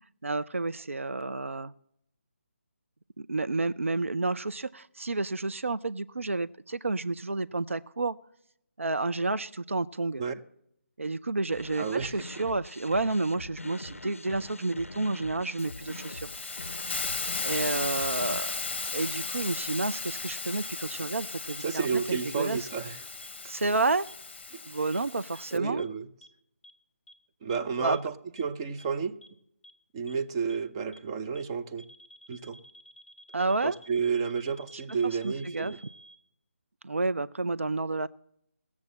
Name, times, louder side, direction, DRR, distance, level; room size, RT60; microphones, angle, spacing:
voice 1, 0.2-1.7 3.2-8.2 8.8-10.2 11.0-16.3 17.4-18.6 18.9-22.7 23.4-24.1 24.7-25.8 27.8-28.0 33.3-33.8 34.7-35.7 36.8-38.1, right 3 dB, 75° right, 14 dB, 0.4 m, -30 dB
sound 1, 11.5-18.4, left 2 dB, 80° left, 0.4 m, -43 dB
voice 2, 11.8-12.1 21.6-23.0 24.5-24.6 25.5-26.1 27.4-29.1 29.9-31.8 32.3-32.6 33.6-35.8, right 6 dB, 20° right, 7 dB, 0.6 m, -31 dB
Hiss, 15.6-25.6, left 4 dB, 50° left, 0.7 m, -36 dB
sound 2, 19.8-19.9 20.6-20.7 21.5-21.6 22.4-22.5 23.2-23.3 24.1-24.2 24.9-25.0 25.4-25.5 25.8-25.9 26.2-26.3 26.6-26.7 27.1-27.2 27.5-27.6 27.9-28.0 28.4-28.5 28.8-28.9 29.2-29.3 29.6-29.7 30.1-30.2 30.5-30.6 30.9-31.0 31.4-31.5 31.8-36.2, equal, 5° left, 0.9 m, -52 dB
18.0 x 7.2 x 7.6 m, 0.76 s
figure-of-eight pair, 150°, 7 cm